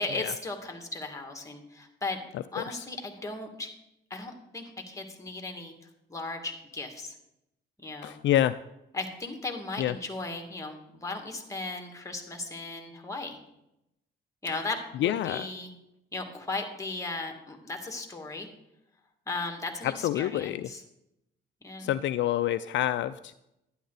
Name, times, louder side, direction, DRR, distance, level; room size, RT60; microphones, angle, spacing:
voice 1, 0.0-2.2 2.5-3.7 4.1-5.7 6.1-7.1 7.8-8.2 8.9-13.4 14.4-15.7 16.1-18.5 19.3-20.8 21.6-21.9, left 3 dB, 15° left, 4 dB, 2.1 m, -36 dB
voice 2, 2.3-2.9 8.0-8.6 9.8-9.9 15.0-15.5 19.8-20.7 21.8-23.3, left 12 dB, 70° left, 12 dB, 0.4 m, -28 dB
11.5 x 10.0 x 4.0 m, 0.85 s
cardioid pair, 90°, 20 cm